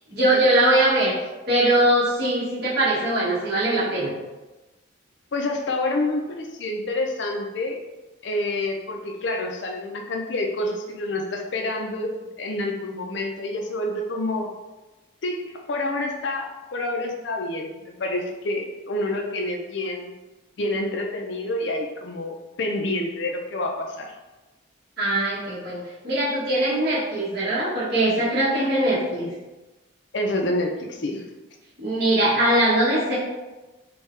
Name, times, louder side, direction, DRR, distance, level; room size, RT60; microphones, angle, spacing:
voice 1, 0.1-1.1 1.5-4.2 25.0-29.3 31.8-33.2, right 1 dB, 50° right, -8 dB, 1.4 m, -21 dB
voice 2, 5.3-7.8 8.2-14.5 15.2-20.1 20.6-24.1 30.1-31.2, left 2 dB, 60° left, 2 dB, 0.5 m, -28 dB
4.6 x 2.3 x 3.2 m, 1.1 s
head